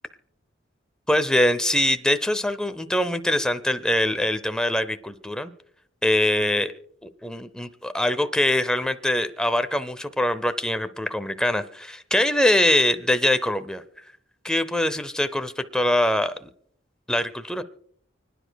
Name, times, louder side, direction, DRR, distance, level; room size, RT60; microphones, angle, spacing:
voice 1, 1.1-5.5 6.0-6.7 7.2-13.8 14.4-16.5 17.1-17.6, left 1 dB, 5° left, 9 dB, 0.6 m, -23 dB
29.5 x 10.0 x 2.3 m, 0.63 s
head